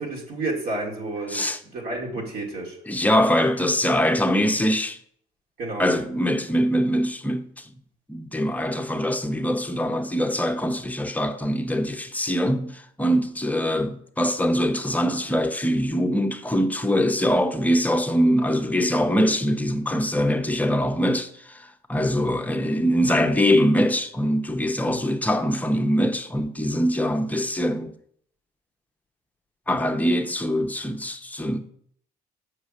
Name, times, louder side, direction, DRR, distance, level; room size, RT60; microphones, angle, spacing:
voice 1, 0.0-2.8 5.6-5.9 24.8-25.0, right 2 dB, 65° right, 2.6 m, -31 dB
voice 2, 1.3-1.6 2.2-2.3 2.9-5.0 5.8-7.7 8.1-27.9 29.7-31.6, equal, 10° left, 0.7 m, -23 dB
6.5 x 4.8 x 6.4 m
cardioid pair, 110°, 17 cm